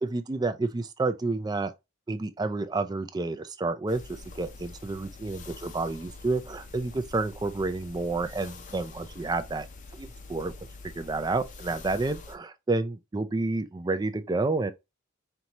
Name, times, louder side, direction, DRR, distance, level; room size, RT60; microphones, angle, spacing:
voice 1, 0.0-1.7 2.1-9.7 9.9-10.5 11.0-14.7, right 3 dB, 20° right, 0.4 m, -30 dB
sound 1, 3.9-12.4, left 3 dB, 35° left, 0.6 m, -45 dB
4.5 x 2.7 x 2.9 m
head